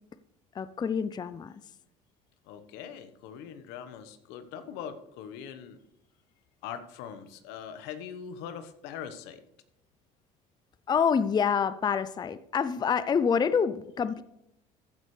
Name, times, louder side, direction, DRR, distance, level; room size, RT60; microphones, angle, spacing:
voice 1, 0.5-1.6 10.9-14.2, left 6 dB, 25° left, 14 dB, 0.5 m, -27 dB
voice 2, 2.4-5.8 6.6-9.4, left 8 dB, 75° left, 10 dB, 1.2 m, -42 dB
15.0 x 9.7 x 3.3 m, 0.81 s
supercardioid pair, 95°, 18 cm